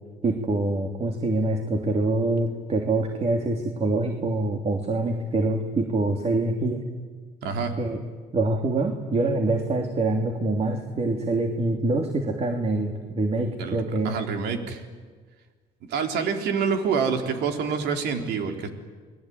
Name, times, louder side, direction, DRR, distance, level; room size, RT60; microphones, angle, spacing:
voice 1, 0.2-6.8 7.8-8.0 8.3-14.1, right 2 dB, 40° right, 4 dB, 3.1 m, -25 dB
voice 2, 7.4-7.7 13.6-14.9 15.9-18.7, right 6 dB, 80° right, 5 dB, 3.8 m, -27 dB
30.0 x 21.0 x 9.4 m, 1.5 s
cardioid pair, 110°, 17 cm